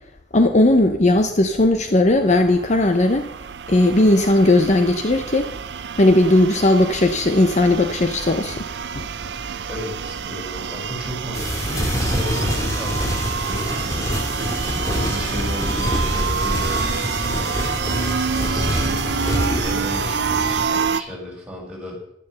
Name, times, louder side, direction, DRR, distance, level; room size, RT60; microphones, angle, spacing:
voice 1, 0.3-3.3 3.7-5.5 6.0-8.7 9.0-9.1, left 1 dB, 40° left, 7 dB, 0.8 m, -17 dB
sound 1, 2.3-21.0, right 6 dB, 60° right, 0.6 m, -28 dB
voice 2, 9.3-14.1 14.9-17.7 18.3-19.2 19.6-22.0, left 1 dB, 5° right, -4 dB, 4.9 m, -34 dB
sound 2, 11.3-20.7, equal, 15° left, 2.2 m, -25 dB
11.0 x 10.0 x 6.8 m, 0.75 s
head